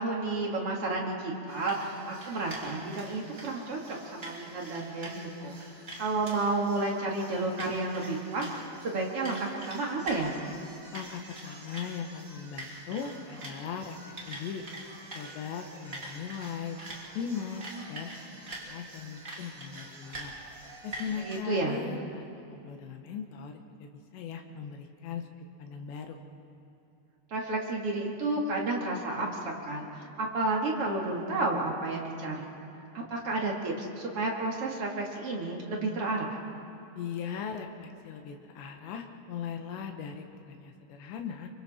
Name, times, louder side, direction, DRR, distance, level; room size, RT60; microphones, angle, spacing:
voice 1, 0.0-5.6 6.0-8.5 8.8-10.3 21.2-21.8 27.3-32.5 32.9-36.4, right 2 dB, 40° right, -1 dB, 2.4 m, -31 dB
sound 1, 1.5-21.4, right 1 dB, 20° right, 2.6 m, -45 dB
voice 2, 10.9-14.8 15.2-16.8 17.2-18.3 18.7-20.3 20.8-25.3 25.6-26.2 37.0-41.5, left 7 dB, 85° left, 4 dB, 3.5 m, -39 dB
27.0 x 24.5 x 4.4 m, 3.0 s
omnidirectional pair, 4.9 m